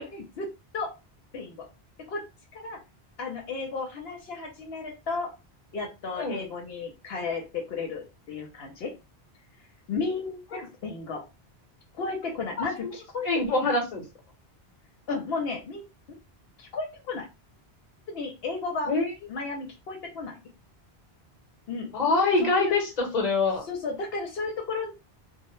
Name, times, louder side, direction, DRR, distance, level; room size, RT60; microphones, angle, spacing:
voice 1, 0.1-0.5 0.7-0.9 1.3-1.7 2.1-2.2 2.5-2.8 3.2-5.3 5.7-8.9 9.9-11.2 12.0-13.3 13.6-13.7 15.1-15.8 16.6-17.3 18.1-19.0 19.3-20.4 21.7-21.9 22.4-22.7 23.7-24.9, left 4 dB, 75° left, 1 dB, 0.8 m, -33 dB
voice 2, 13.2-14.0 18.8-19.1 21.9-23.6, left 3 dB, 45° left, 2 dB, 0.9 m, -24 dB
2.1 x 2.0 x 2.9 m, 0.27 s
omnidirectional pair, 1.1 m